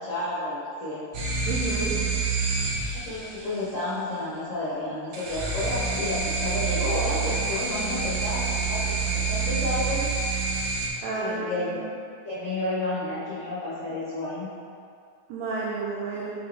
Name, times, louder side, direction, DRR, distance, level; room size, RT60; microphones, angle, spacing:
voice 1, 0.1-1.0 2.9-10.1 11.1-11.8 12.2-14.5, left 2 dB, 85° left, -12 dB, 0.7 m, -31 dB
sound 1, 1.1-3.5 5.1-10.9, right 4 dB, 70° right, 1.8 m, -27 dB
voice 2, 1.5-1.9 11.0-11.4 11.7-11.8 15.3-16.3, right 4 dB, 90° right, -4 dB, 1.5 m, -30 dB
6.5 x 5.0 x 3.4 m, 2.4 s
omnidirectional pair, 4.0 m